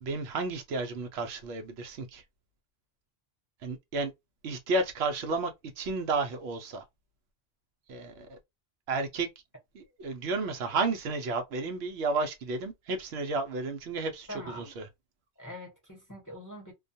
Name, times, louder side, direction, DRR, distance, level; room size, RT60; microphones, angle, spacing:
voice 1, 0.0-2.2 3.6-4.1 4.4-6.8 7.9-8.4 8.9-9.3 9.7-14.9, right 3 dB, 75° right, 0.9 m, -32 dB
voice 2, 14.3-14.8 15.4-16.7, equal, 20° left, 0.8 m, -43 dB
2.3 x 2.3 x 2.6 m
omnidirectional pair, 1.1 m